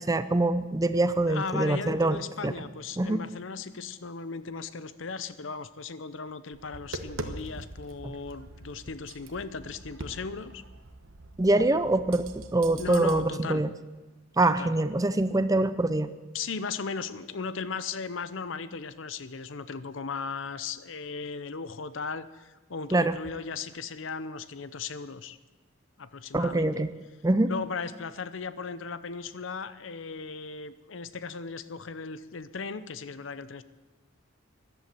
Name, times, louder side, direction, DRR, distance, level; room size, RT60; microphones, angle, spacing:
voice 1, 0.0-2.5 3.0-3.2 8.0-8.1 11.4-13.7 14.4-16.1 22.9-23.2 26.3-26.9 27.2-27.5, right 2 dB, 15° right, 13 dB, 0.6 m, -24 dB
voice 2, 1.3-10.6 12.8-13.6 14.4-14.7 16.3-25.4 26.0-26.8 27.5-33.6, left 5 dB, 70° left, 14 dB, 0.7 m, -37 dB
Tap, 6.5-13.2, right 2 dB, 85° right, 1.2 m, -43 dB
14.0 x 11.5 x 7.6 m, 1.1 s
head